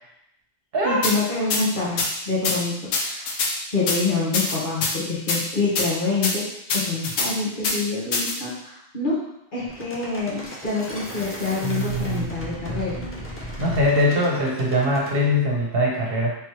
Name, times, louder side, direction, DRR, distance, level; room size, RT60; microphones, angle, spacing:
voice 1, 0.8-3.2 3.7-6.4 6.7-9.2 9.5-13.0, left 3 dB, 50° left, -7 dB, 1.3 m, -26 dB
sound 1, 1.0-1.1 1.5-1.6 2.0-2.1 2.4-2.6 2.9-3.5 3.9-4.0 4.3-4.9 5.3-5.4 5.8-5.9 6.2-6.3 6.7-7.3 7.6-7.8 8.1-8.3, left 3 dB, 80° left, 0.9 m, -23 dB
sound 2, 9.7-15.2, equal, 15° left, 0.5 m, -35 dB
voice 2, 11.6-12.3 13.6-16.3, left 1 dB, 60° right, -3 dB, 1.0 m, -22 dB
3.5 x 3.1 x 3.0 m, 0.79 s
omnidirectional pair, 1.1 m